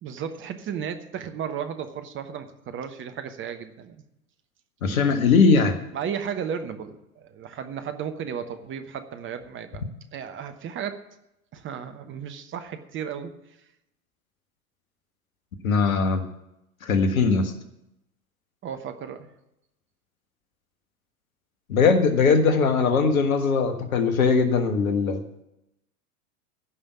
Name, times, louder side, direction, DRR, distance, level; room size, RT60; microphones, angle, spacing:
voice 1, 0.0-4.0 5.9-9.8 10.1-11.0 11.5-13.3 18.6-19.3, right 7 dB, 25° right, 8 dB, 1.1 m, -34 dB
voice 2, 4.8-5.7 15.6-16.2 16.8-17.5 21.7-25.2, left 4 dB, 65° left, 8 dB, 1.6 m, -20 dB
15.5 x 5.6 x 8.1 m, 0.86 s
figure-of-eight pair, 85°, 44 cm